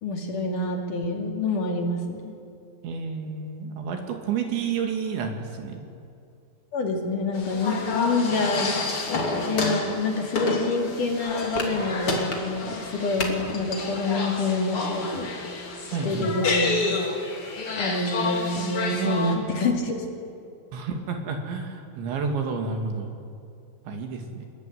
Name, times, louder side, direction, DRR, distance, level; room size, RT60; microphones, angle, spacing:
voice 1, 0.0-2.3 6.7-8.7 9.5-15.3 16.0-16.7 17.8-19.9, left 3 dB, 50° left, 2 dB, 3.6 m, -27 dB
voice 2, 2.8-5.8 15.9-16.4 18.9-19.4 20.7-23.1 23.9-24.5, right 5 dB, 85° right, 3 dB, 4.8 m, -30 dB
sound 1, 7.4-19.3, left 3 dB, 35° left, 3.1 m, -29 dB
26.0 x 21.5 x 9.5 m, 2.5 s
omnidirectional pair, 5.1 m